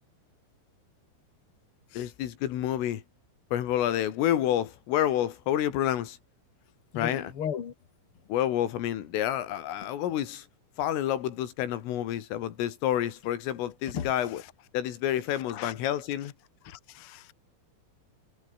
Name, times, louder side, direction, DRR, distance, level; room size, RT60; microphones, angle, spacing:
voice 1, 1.9-3.0 3.5-6.2 7.0-7.3 8.3-10.5 10.8-14.4 14.7-16.3, left 11 dB, 85° left, 4.9 m, -29 dB
voice 2, 6.9-7.7 13.9-14.1 15.5-15.7 16.6-17.2, left 8 dB, 50° left, 1.7 m, -36 dB
omnidirectional pair, 5.7 m